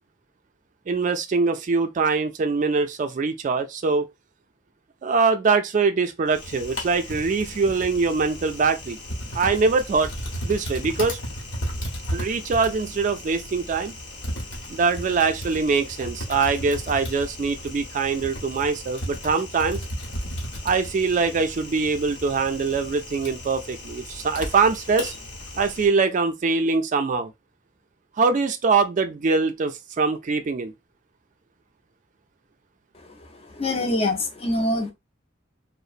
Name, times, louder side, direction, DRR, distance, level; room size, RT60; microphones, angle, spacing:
voice 1, 0.9-4.1 5.0-9.0 9.3-10.1 10.4-11.2 12.1-13.9 14.7-19.8 20.6-25.1 25.6-27.3 28.2-30.7, right 4 dB, 40° right, 0.3 m, -23 dB
Typing, 6.3-25.9, equal, 70° left, 1.0 m, -35 dB
voice 2, 32.9-34.9, left 1 dB, 30° left, 0.6 m, -26 dB
2.8 x 2.0 x 2.4 m
head